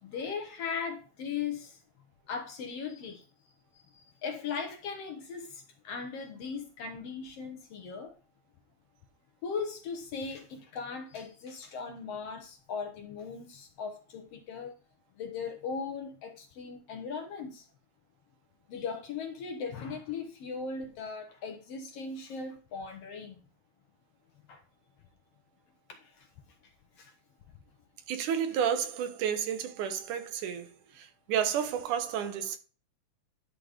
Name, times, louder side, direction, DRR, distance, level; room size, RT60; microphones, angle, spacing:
voice 1, 0.0-1.8 2.3-3.2 3.9-8.1 9.4-14.7 15.2-17.6 18.7-23.4 24.5-24.6 25.9-26.3 27.0-27.1, left 5 dB, 65° left, 1.6 m, -38 dB
voice 2, 28.1-32.6, right 8 dB, 80° right, 2.4 m, -31 dB
11.0 x 3.9 x 4.9 m
omnidirectional pair, 3.5 m